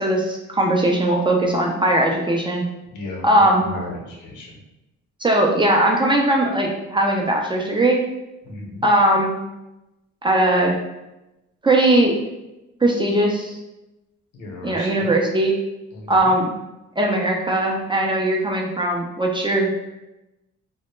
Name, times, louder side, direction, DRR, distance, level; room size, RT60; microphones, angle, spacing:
voice 1, 0.0-2.6 3.2-3.7 5.2-8.0 8.8-9.4 10.2-10.8 11.6-12.1 12.8-13.6 14.6-15.5 16.1-16.5 17.0-19.7, right 1 dB, 15° right, -1 dB, 0.3 m, -19 dB
voice 2, 2.9-4.5 8.4-8.8 14.3-15.1 15.9-16.3, left 2 dB, 85° left, -2 dB, 0.8 m, -35 dB
2.1 x 2.0 x 3.0 m, 0.97 s
cardioid pair, 90°, 30 cm